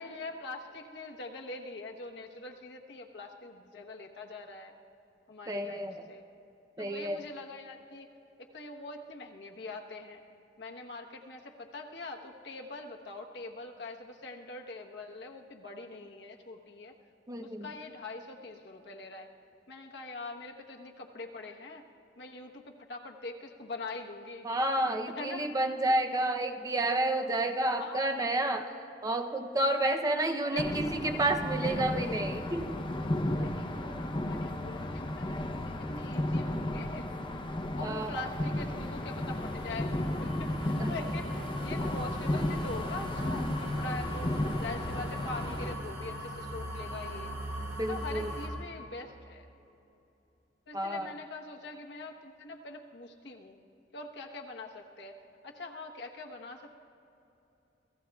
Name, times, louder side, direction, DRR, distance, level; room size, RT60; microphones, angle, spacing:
voice 1, 0.0-4.7 5.3-6.2 6.8-8.1 8.4-10.2 10.6-16.9 17.4-19.3 19.7-21.8 22.2-24.5 25.2-25.5 27.8-28.0 30.2-31.0 33.4-34.0 34.3-35.4 35.7-37.1 37.8-39.9 40.2-44.3 44.6-47.3 47.9-49.5 50.7-53.6 53.9-55.2 55.4-56.7, left 2 dB, 65° left, 2 dB, 1.1 m, -43 dB
voice 2, 5.5-6.1 6.8-7.2 17.3-17.7 24.4-28.7 29.0-32.8 37.8-38.2 40.8-40.9 47.8-48.3 50.7-51.1, right 1 dB, 20° right, 5 dB, 0.6 m, -30 dB
sound 1, 30.6-45.7, left 1 dB, 30° left, 0.7 m, -34 dB
sound 2, 39.1-48.5, equal, 75° right, 3.0 m, -40 dB
28.5 x 16.5 x 2.3 m, 2.9 s
head